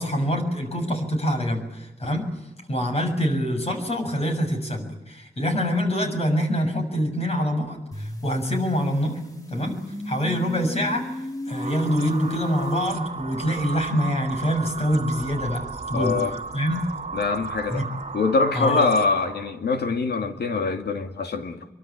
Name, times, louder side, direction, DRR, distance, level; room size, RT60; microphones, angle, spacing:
voice 1, 0.0-2.3 2.7-9.2 9.5-9.8 10.0-11.1 11.5-16.1 16.5-16.8 17.7-17.9 18.5-18.9, equal, 40° left, 6.9 m, -25 dB
sound 1, 7.9-12.9, left 1 dB, 20° left, 2.8 m, -34 dB
sound 2, 11.5-19.6, right 4 dB, 40° right, 2.2 m, -35 dB
voice 2, 15.9-16.4 17.1-17.9 18.1-21.7, left 4 dB, 80° left, 2.4 m, -24 dB
25.5 x 24.0 x 8.8 m
wide cardioid pair, 125°, 17 cm